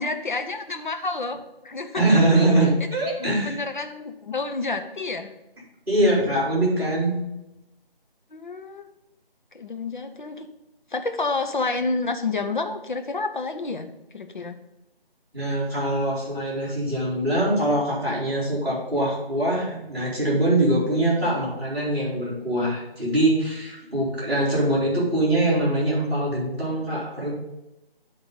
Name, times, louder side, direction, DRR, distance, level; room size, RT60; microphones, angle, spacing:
voice 1, 0.0-2.2 3.2-5.3 8.3-8.9 9.5-10.5 10.9-14.6, left 3 dB, 50° left, 6 dB, 0.8 m, -29 dB
voice 2, 1.9-3.6 5.9-7.2 15.3-27.3, right 1 dB, 5° right, -16 dB, 3.0 m, -23 dB
10.0 x 3.9 x 5.2 m, 0.93 s
figure-of-eight pair, 160°, 30 cm